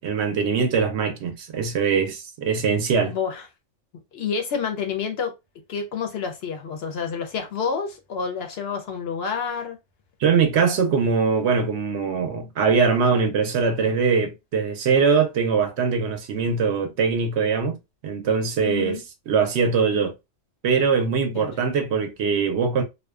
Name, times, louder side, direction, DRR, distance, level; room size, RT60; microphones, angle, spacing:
voice 1, 0.0-3.2 10.2-17.8 18.0-20.1 20.6-22.8, right 5 dB, 70° right, 0.8 m, -22 dB
voice 2, 3.1-3.5 4.1-5.3 5.7-9.8 18.6-19.0 21.3-21.5, left 6 dB, 65° left, 0.7 m, -28 dB
2.5 x 2.1 x 2.3 m
omnidirectional pair, 1.3 m